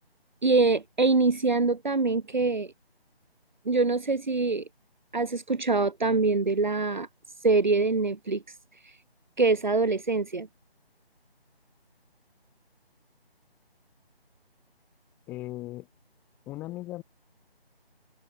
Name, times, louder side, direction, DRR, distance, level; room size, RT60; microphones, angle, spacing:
voice 1, 0.4-2.7 3.6-4.6 5.1-7.1 7.4-8.4 9.4-10.5, right 3 dB, 45° right, 3.0 m, -24 dB
voice 2, 15.3-15.9 16.5-17.0, left 17 dB, 5° left, 7.9 m, -37 dB
open air
figure-of-eight pair, 180°, 31 cm